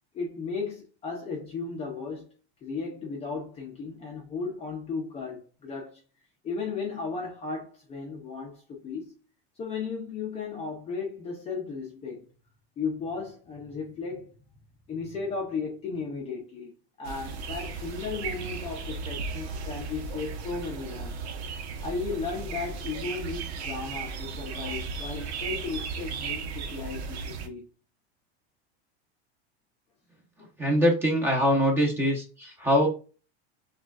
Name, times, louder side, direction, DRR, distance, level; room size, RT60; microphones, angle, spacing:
voice 1, 0.1-2.3 2.6-6.0 6.4-9.1 9.6-12.3 12.8-14.3 14.9-16.7 17.0-21.1 21.8-27.7, left 4 dB, 20° left, 0.6 m, -35 dB
sound 1, 17.0-27.5, right 5 dB, 80° right, 0.9 m, -36 dB
voice 2, 30.4-32.9, equal, 5° right, 0.8 m, -23 dB
5.9 x 2.4 x 2.3 m
supercardioid pair, 150°, 33 cm